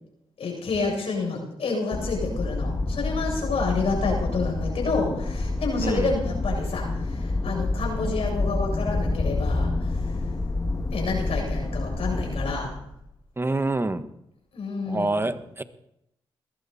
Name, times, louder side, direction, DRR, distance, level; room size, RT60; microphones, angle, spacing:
voice 1, 0.4-10.2 10.9-12.7 14.5-15.3, left 3 dB, 70° left, -1 dB, 7.7 m, -29 dB
sound 1, 1.9-12.8, left 2 dB, 30° left, 1.6 m, -28 dB
voice 2, 5.8-6.2 13.4-14.1 14.9-15.6, right 2 dB, 20° right, 11 dB, 1.4 m, -26 dB
21.0 x 14.0 x 4.3 m, 0.79 s
supercardioid pair, 50°, 10 cm